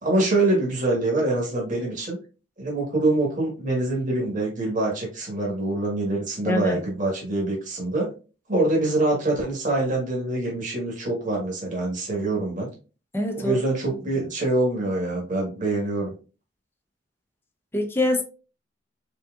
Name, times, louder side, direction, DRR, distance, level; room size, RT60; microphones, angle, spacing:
voice 1, 0.0-2.2 2.6-8.1 8.5-12.7 13.3-16.1, right 2 dB, 45° right, 1.4 m, -25 dB
voice 2, 6.5-6.8 13.1-13.6 17.7-18.2, left 1 dB, 15° left, 0.7 m, -24 dB
4.0 x 3.7 x 2.4 m
head